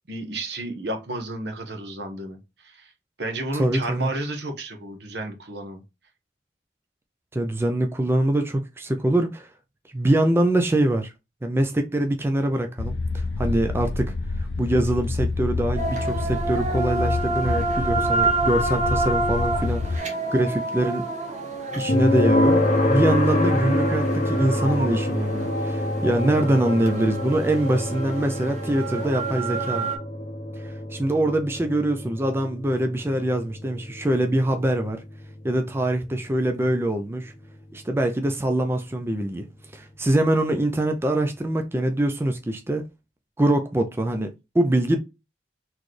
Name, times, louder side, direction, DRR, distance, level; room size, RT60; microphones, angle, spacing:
voice 1, 0.1-2.9 3.2-5.8, right 2 dB, 65° right, 1.0 m, -32 dB
voice 2, 3.6-4.1 7.3-9.5 9.9-11.1 11.4-21.1 21.8-29.9 30.6-35.0 35.4-37.3 37.7-39.5 39.7-42.8 43.4-45.0, right 1 dB, 15° right, 0.4 m, -24 dB
sound 1, 12.8-20.0, left 3 dB, 75° left, 0.4 m, -28 dB
sound 2, 15.8-30.0, right 2 dB, 40° right, 1.2 m, -28 dB
sound 3, 21.9-36.8, left 1 dB, 45° left, 0.8 m, -26 dB
4.1 x 3.0 x 3.2 m
head